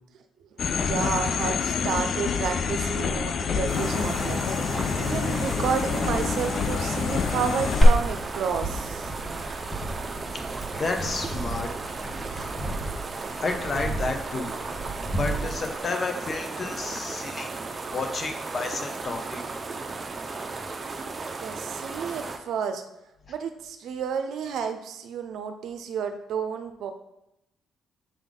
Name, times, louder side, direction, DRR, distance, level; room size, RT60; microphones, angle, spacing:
sound 1, 0.6-7.9, left 6 dB, 55° left, 0.4 m, -27 dB
voice 1, 0.7-9.1 21.4-22.8 23.3-26.9, right 6 dB, 75° right, 7 dB, 0.5 m, -31 dB
sound 2, 3.7-22.4, right 3 dB, 35° right, 0.6 m, -35 dB
Glass, 7.8-15.8, equal, 20° left, 1.2 m, -27 dB
voice 2, 10.3-11.7 12.3-12.5 13.4-14.5 15.2-19.4, left 3 dB, 40° left, 4 dB, 0.9 m, -31 dB
7.5 x 3.6 x 3.8 m, 0.86 s
cardioid pair, 90°, 0 cm